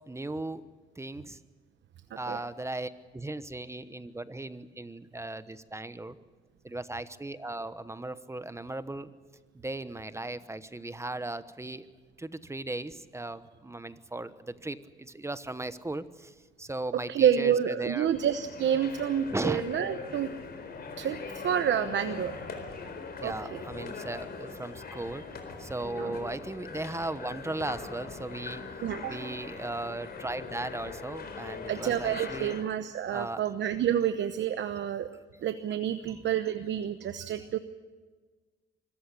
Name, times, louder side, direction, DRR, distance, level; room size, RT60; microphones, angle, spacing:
voice 1, 0.1-0.7 1.0-1.4 2.2-6.2 6.6-9.1 9.5-11.9 12.2-18.1 19.3-19.6 23.2-25.2 25.6-28.6 29.1-32.6 33.1-33.4 36.0-36.2 37.2-37.3, right 2 dB, 15° right, 13 dB, 1.1 m, -37 dB
voice 2, 17.1-20.3 21.0-22.3 23.2-23.3 24.9-25.0 26.0-26.1 28.8-29.2 31.7-35.1 35.4-37.6, right 9 dB, 65° right, 10 dB, 1.0 m, -28 dB
sound 1, 18.0-32.6, left 4 dB, 50° left, 4.2 m, -41 dB
25.0 x 14.5 x 9.9 m, 1.4 s
cardioid pair, 90°, 20 cm